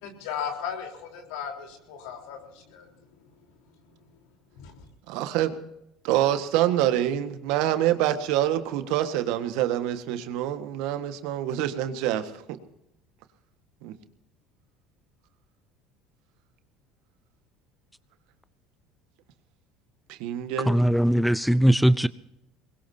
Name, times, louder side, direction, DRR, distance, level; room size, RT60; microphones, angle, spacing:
voice 1, 0.0-2.9 4.6-4.7, left 7 dB, 75° left, 2 dB, 4.0 m, -36 dB
voice 2, 5.1-5.6 6.0-12.6 13.8-13.9 20.1-20.7, right 12 dB, 75° right, 9 dB, 1.6 m, -26 dB
voice 3, 20.6-22.1, equal, ahead, 16 dB, 0.5 m, -20 dB
23.5 x 21.0 x 2.8 m, 0.81 s
supercardioid pair, 90°, 0 cm